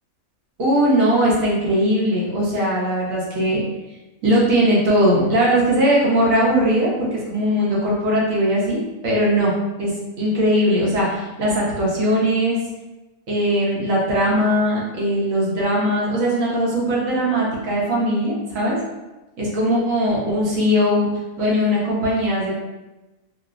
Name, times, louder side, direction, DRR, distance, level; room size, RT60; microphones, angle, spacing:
voice 1, 0.6-3.6 4.2-9.5 9.8-9.9 10.2-12.6 13.3-18.8 19.4-21.1 21.4-22.6, equal, 70° right, -5 dB, 1.4 m, -19 dB
4.4 x 2.1 x 2.4 m, 1.1 s
omnidirectional pair, 1.5 m